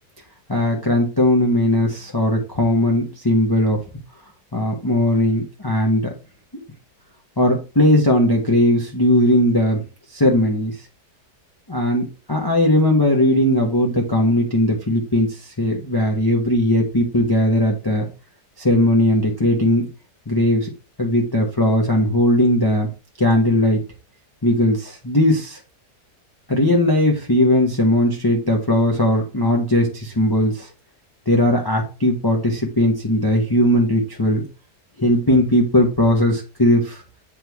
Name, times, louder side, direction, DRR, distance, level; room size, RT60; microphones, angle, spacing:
voice 1, 0.5-3.8 4.5-6.1 7.4-9.8 10.1-10.7 11.7-18.1 18.6-19.9 20.3-20.7 21.0-22.9 23.2-23.8 24.4-25.6 26.5-30.7 31.3-34.4 35.0-37.0, left 1 dB, 15° left, 0 dB, 0.8 m, -18 dB
8.2 x 3.5 x 4.6 m, 0.32 s
omnidirectional pair, 1.8 m